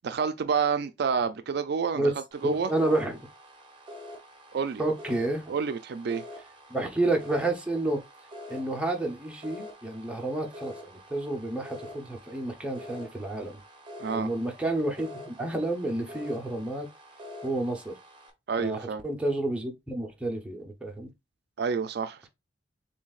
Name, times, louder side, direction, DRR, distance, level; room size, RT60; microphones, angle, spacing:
voice 1, 0.0-2.0 2.4-2.7 4.5-4.8 5.5-6.2 14.0-14.3 18.5-19.0 21.6-22.3, right 6 dB, 60° right, 0.4 m, -28 dB
sound 1, 2.3-18.3, left 1 dB, 30° right, 1.1 m, -46 dB
voice 2, 2.4-3.3 4.8-5.5 6.7-8.0 8.5-13.6 14.1-16.9 17.4-17.9 18.6-21.1, right 2 dB, 5° right, 0.9 m, -30 dB
7.0 x 2.7 x 2.4 m
head